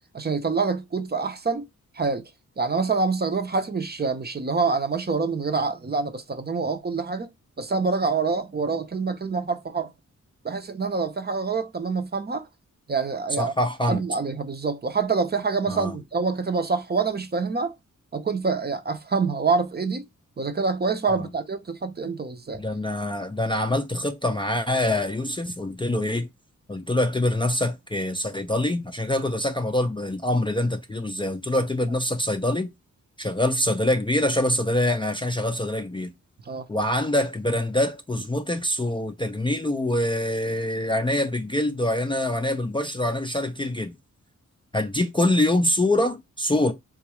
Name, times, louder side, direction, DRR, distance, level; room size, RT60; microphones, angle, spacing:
voice 1, 0.1-1.6 1.9-2.2 2.6-7.3 7.6-9.9 10.4-12.5 12.9-13.5 13.8-17.7 18.1-20.0 20.4-22.6 36.5-36.7, right 4 dB, 30° right, 0.6 m, -26 dB
voice 2, 13.4-14.0 15.7-16.0 21.1-21.3 22.5-26.3 26.7-32.7 33.2-36.1 36.7-43.9 44.7-46.7, left 1 dB, 15° left, 0.4 m, -25 dB
3.8 x 2.3 x 2.9 m
wide cardioid pair, 105°, 31 cm